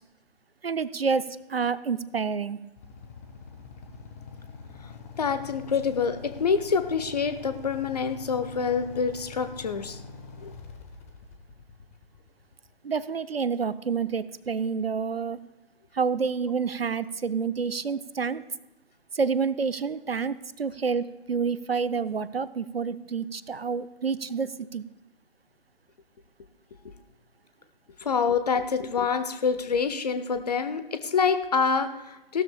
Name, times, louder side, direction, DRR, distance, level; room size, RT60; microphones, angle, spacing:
voice 1, 0.6-2.6 12.8-15.4 15.9-18.4 19.1-24.8, right 5 dB, 75° right, 15 dB, 0.6 m, -28 dB
Motorcycle / Idling, 2.8-12.7, left 5 dB, 15° left, 0.7 m, -44 dB
voice 2, 5.2-10.0 10.4-10.5 28.0-32.4, left 5 dB, 40° left, 10 dB, 0.9 m, -26 dB
16.5 x 12.5 x 2.3 m, 0.98 s
figure-of-eight pair, 140°, 30 cm